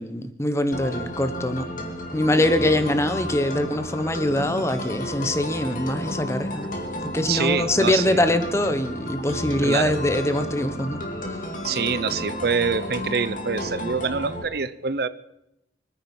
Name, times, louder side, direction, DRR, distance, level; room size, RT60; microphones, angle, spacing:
voice 1, 0.0-1.7 2.1-6.7 7.0-11.0, left 1 dB, 15° left, 10 dB, 1.0 m, -23 dB
sound 1, 0.7-14.4, left 1 dB, 45° left, 2.3 m, -32 dB
voice 2, 7.3-8.3 9.6-10.0 11.6-15.1, right 5 dB, 60° right, 15 dB, 0.6 m, -25 dB
25.0 x 9.5 x 5.5 m, 0.84 s
head